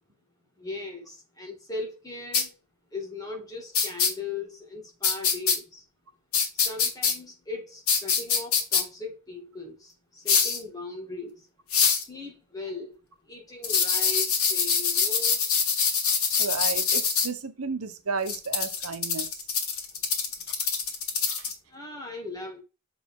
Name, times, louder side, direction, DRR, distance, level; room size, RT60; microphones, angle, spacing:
voice 1, 0.6-2.5 2.9-5.8 6.5-11.4 12.1-13.0 13.3-15.4 21.7-22.6, left 3 dB, 15° left, 2.0 m, -38 dB
sound 1, 2.3-2.4 3.7-4.1 5.0-5.6 6.3-7.1 7.9-8.8 10.3-10.6 11.7-12.0 13.6-17.3 18.3-21.5, left 6 dB, 75° left, 1.9 m, -24 dB
voice 2, 16.4-19.3 21.3-21.4, right 4 dB, 90° right, 1.0 m, -33 dB
6.8 x 5.0 x 3.7 m
head